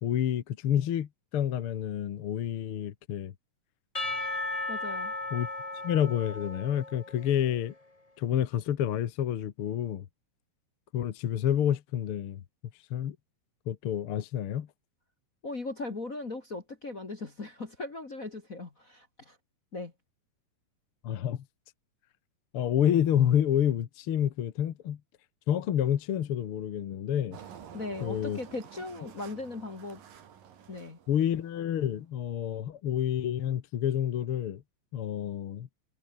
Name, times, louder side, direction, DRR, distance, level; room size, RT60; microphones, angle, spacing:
voice 1, 0.0-3.3 5.3-5.5 5.8-7.7 8.2-10.1 10.9-12.4 12.9-13.2 13.7-14.7 21.0-21.4 22.5-25.0 25.5-27.4 28.0-28.4 31.1-34.6 34.9-35.7, left 10 dB, 55° left, 1.6 m, -29 dB
Percussion / Church bell, 3.9-7.6, left 2 dB, 10° left, 2.0 m, -36 dB
voice 2, 4.7-5.1 15.4-19.4 19.7-19.9 27.7-30.0 30.7-31.0, left 3 dB, 30° left, 2.0 m, -38 dB
Engine, 27.3-31.8, right 8 dB, 80° right, 4.2 m, -50 dB
omnidirectional pair, 3.9 m